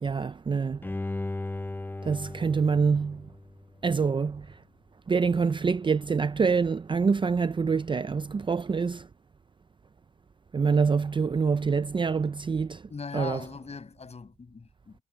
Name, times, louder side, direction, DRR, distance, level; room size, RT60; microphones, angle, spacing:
voice 1, 0.0-0.9 2.0-3.3 3.8-4.5 5.1-9.1 10.5-13.4, right 5 dB, 25° right, 0.5 m, -26 dB
Bowed string instrument, 0.8-3.9 4.4-4.5, left 2 dB, 10° left, 0.7 m, -36 dB
voice 2, 12.9-15.0, left 4 dB, 30° left, 5.9 m, -40 dB
cardioid pair, 90°, 20 cm